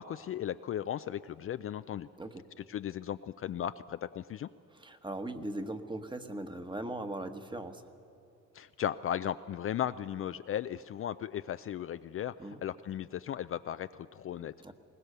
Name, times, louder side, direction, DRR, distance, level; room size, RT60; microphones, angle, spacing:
voice 1, 0.0-2.1 2.7-4.5 8.5-12.3 12.6-14.5, left 10 dB, 45° left, 12 dB, 0.4 m, -36 dB
voice 2, 4.7-7.9 12.4-12.6 14.6-14.7, right 1 dB, 15° right, 8 dB, 1.2 m, -39 dB
21.0 x 18.5 x 6.7 m, 3.0 s
cardioid pair, 90°, 30 cm